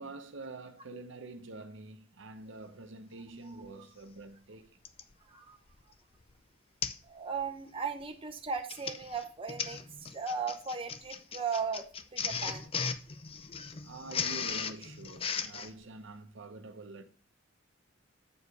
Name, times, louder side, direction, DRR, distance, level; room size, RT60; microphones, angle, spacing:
voice 1, 0.0-4.8 13.8-17.0, right 2 dB, 65° right, 0.9 m, -46 dB
Printer, 3.7-3.8 4.8-5.1 5.7-5.9 6.2-6.3 6.8-7.1 7.4-7.7 8.5-15.7, left 6 dB, 30° left, 0.5 m, -37 dB
voice 2, 7.0-12.7, right 5 dB, 25° right, 0.8 m, -37 dB
8.2 x 4.8 x 4.7 m
head